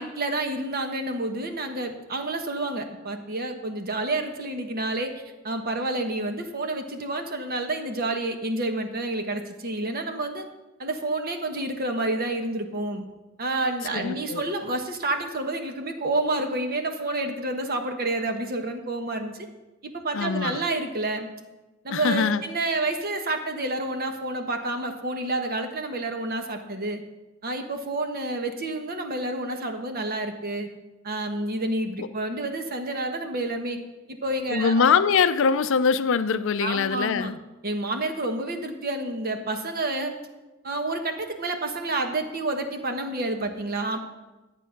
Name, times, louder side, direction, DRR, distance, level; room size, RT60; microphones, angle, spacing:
voice 1, 0.0-5.1 5.4-10.4 10.8-13.0 13.4-19.5 19.8-21.3 21.8-27.0 27.4-30.7 31.0-33.8 34.1-34.9 36.6-37.3 37.6-40.1 40.6-44.0, right 2 dB, 45° right, 5 dB, 1.2 m, -29 dB
voice 2, 13.9-14.4 20.1-20.6 21.9-22.4 32.0-32.1 34.5-37.4, left 6 dB, 60° left, 12 dB, 0.5 m, -23 dB
11.5 x 8.3 x 5.8 m, 1.1 s
head